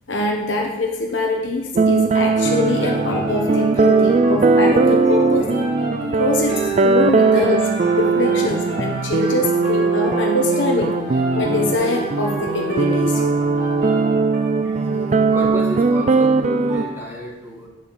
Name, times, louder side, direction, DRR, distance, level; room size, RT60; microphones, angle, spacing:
voice 1, 0.1-5.5 6.0-7.7 8.0-13.2, left 2 dB, 75° left, 0 dB, 1.2 m, -23 dB
sound 1, 1.7-16.8, right 4 dB, 35° right, 0.3 m, -19 dB
sound 2, 2.3-16.9, right 2 dB, 65° right, 2.8 m, -29 dB
voice 2, 15.3-17.7, left 1 dB, 10° right, -3 dB, 1.9 m, -31 dB
9.2 x 4.2 x 7.0 m, 1.0 s
head